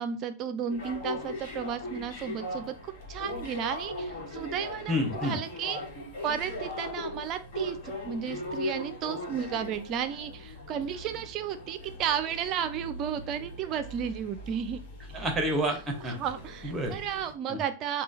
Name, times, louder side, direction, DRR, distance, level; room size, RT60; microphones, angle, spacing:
voice 1, 0.0-5.8 6.2-14.8 16.2-18.0, right 8 dB, 35° right, 11 dB, 0.5 m, -33 dB
sound 1, 0.7-17.3, left 2 dB, 50° left, 1.4 m, -39 dB
voice 2, 4.9-5.4 15.1-16.2 16.6-17.0 17.5-17.6, equal, 15° right, 3 dB, 1.0 m, -29 dB
3.7 x 2.3 x 3.9 m, 0.33 s
figure-of-eight pair, 90°, 0 cm